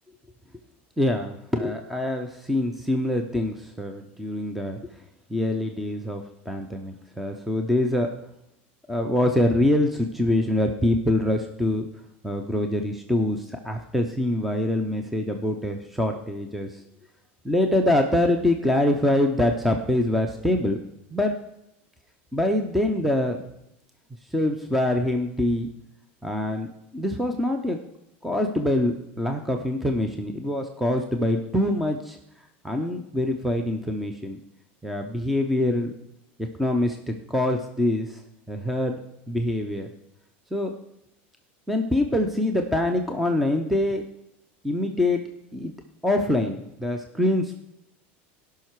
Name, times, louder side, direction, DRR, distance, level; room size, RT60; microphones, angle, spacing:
voice 1, 1.0-4.8 5.3-8.1 8.9-11.9 12.2-16.8 17.4-20.8 21.1-21.4 22.3-23.4 24.3-25.7 26.2-26.7 26.9-27.8 28.2-32.2 32.6-34.4 34.8-35.9 36.6-38.2 38.5-39.0 39.3-39.9 40.5-40.7 41.7-44.0 44.6-45.2 45.5-45.7 46.0-47.5, left 1 dB, ahead, 4 dB, 0.6 m, -24 dB
16.5 x 5.8 x 4.7 m, 0.84 s
supercardioid pair, 150°, 6 cm